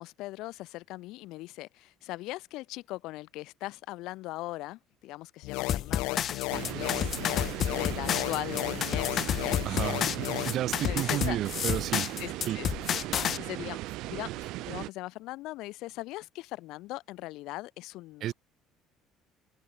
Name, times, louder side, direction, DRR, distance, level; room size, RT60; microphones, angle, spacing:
voice 1, 0.0-10.5 10.9-11.4 12.2-12.7 13.3-18.3, left 18 dB, 65° left, 5.1 m, -40 dB
sound 1, 5.4-10.6, left 25 dB, 85° left, 0.4 m, -35 dB
sound 2, 5.7-13.4, left 9 dB, 35° left, 0.8 m, -30 dB
sound 3, 6.5-14.9, right 18 dB, 65° right, 0.9 m, -38 dB
voice 2, 9.6-12.1 12.5-12.6 18.2-18.3, right 12 dB, 45° right, 0.5 m, -32 dB
cardioid pair, 165°, 0 cm